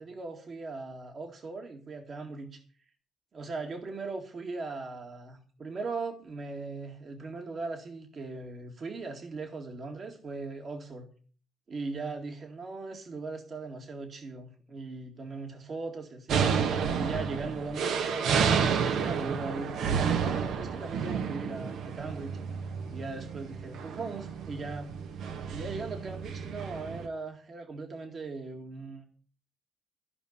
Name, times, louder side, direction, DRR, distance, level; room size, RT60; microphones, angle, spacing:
voice 1, 0.0-2.6 3.3-11.1 11.7-16.6 16.9-22.4 22.9-24.9 25.5-29.0, right 3 dB, 50° right, 3 dB, 2.1 m, -39 dB
sound 1, 16.3-27.1, right 6 dB, 75° right, 1.2 m, -31 dB
15.0 x 5.5 x 8.6 m, 0.43 s
cardioid pair, 90°, 0 cm